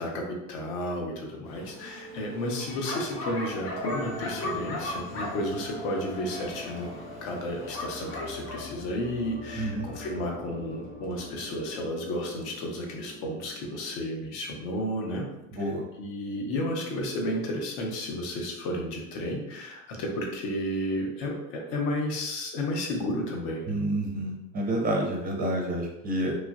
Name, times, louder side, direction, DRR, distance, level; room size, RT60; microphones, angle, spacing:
voice 1, 0.0-15.3 15.6-15.7 16.0-23.8, left 1 dB, 60° left, 1 dB, 0.8 m, -32 dB
Bark, 1.5-8.6, left 2 dB, 35° left, 0.6 m, -38 dB
sound 1, 1.7-14.6, left 1 dB, 85° left, 1.1 m, -43 dB
voice 2, 9.6-9.9 15.5-15.8 23.7-26.4, right 1 dB, 25° right, 1 dB, 0.4 m, -29 dB
3.0 x 2.4 x 2.4 m, 0.91 s
supercardioid pair, 115°, 40 cm